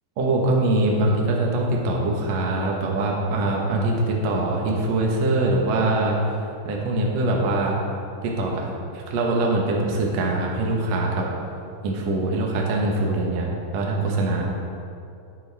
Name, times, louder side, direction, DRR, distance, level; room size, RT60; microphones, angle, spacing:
voice 1, 0.2-6.3 6.6-7.8 8.2-8.7 8.9-11.3 11.8-13.5 13.7-14.4, right 2 dB, 90° right, -1 dB, 1.4 m, -23 dB
11.5 x 9.9 x 3.5 m, 2.6 s
omnidirectional pair, 5.2 m